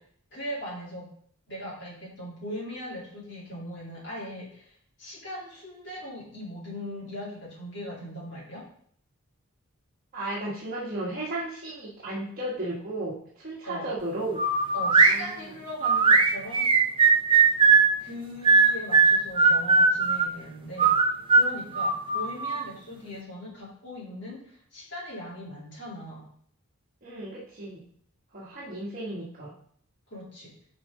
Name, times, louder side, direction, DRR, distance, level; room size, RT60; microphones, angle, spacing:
voice 1, 0.3-1.1 1.5-8.6 13.6-13.8 14.7-16.7 18.0-20.9 21.3-26.2 30.1-30.5, equal, 55° left, -6 dB, 3.2 m, -39 dB
voice 2, 10.1-14.4 15.0-15.4 27.0-27.8 28.3-29.5, right 1 dB, 40° right, -6 dB, 1.5 m, -34 dB
sound 1, 14.4-15.2 15.8-17.9 18.4-20.3 20.8-22.6, right 4 dB, 25° right, 0.5 m, -19 dB
9.1 x 5.2 x 3.8 m, 0.62 s
head